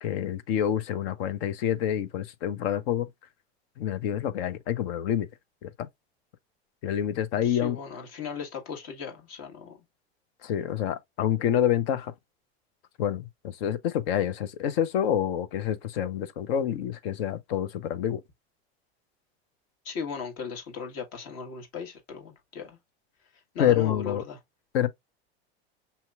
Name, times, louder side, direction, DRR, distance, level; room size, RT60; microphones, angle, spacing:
voice 1, 0.0-3.1 3.8-5.3 5.6-5.9 6.8-7.8 10.4-12.1 13.0-18.2 23.6-24.2 24.7-24.9, left 10 dB, 65° left, 0.7 m, -27 dB
voice 2, 7.4-9.8 19.8-22.8 23.5-24.4, left 6 dB, 50° left, 1.6 m, -37 dB
5.5 x 2.9 x 2.4 m
hypercardioid pair, 90°, 33 cm